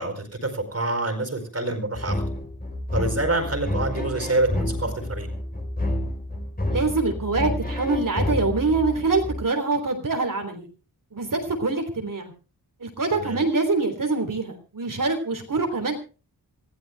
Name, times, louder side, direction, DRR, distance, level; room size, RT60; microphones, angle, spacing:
voice 1, 0.0-2.2 2.9-5.3 13.1-13.4, right 2 dB, 40° right, 7 dB, 4.5 m, -26 dB
sound 1, 2.0-9.4, left 1 dB, 25° left, 3.8 m, -29 dB
voice 2, 6.7-10.7 11.1-12.3 12.8-16.0, right 3 dB, 55° right, 4 dB, 3.6 m, -25 dB
27.5 x 15.5 x 2.3 m, 0.35 s
wide cardioid pair, 95°, 39 cm